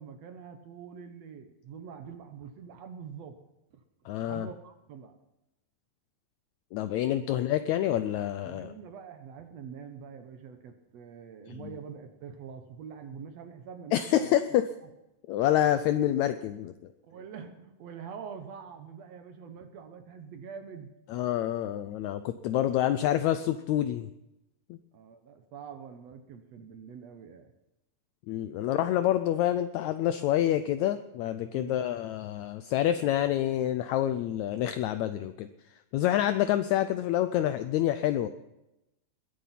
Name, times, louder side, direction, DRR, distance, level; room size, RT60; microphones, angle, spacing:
voice 1, 0.0-3.4 3.7-3.8 4.3-5.1 7.3-7.4 8.4-14.6 17.0-20.9 24.9-27.5 28.6-28.7 31.5-31.8, right 7 dB, 65° right, 7 dB, 1.9 m, -45 dB
voice 2, 4.1-4.5 6.7-8.7 11.5-11.7 13.9-14.7 15.3-16.7 21.1-24.1 24.7-24.8 28.3-38.3, left 12 dB, 85° left, 10 dB, 1.6 m, -27 dB
21.0 x 8.4 x 5.9 m, 0.91 s
omnidirectional pair, 3.9 m